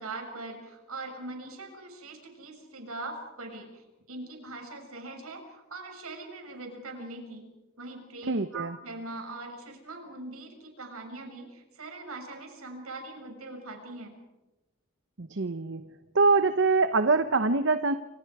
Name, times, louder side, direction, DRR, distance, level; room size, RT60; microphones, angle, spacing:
voice 1, 0.0-7.5 7.8-14.1, right 2 dB, 70° right, 3 dB, 6.8 m, -41 dB
voice 2, 8.3-8.7 15.2-15.8 16.1-17.9, right 3 dB, 55° right, 10 dB, 0.9 m, -24 dB
29.0 x 27.0 x 4.9 m, 1.0 s
head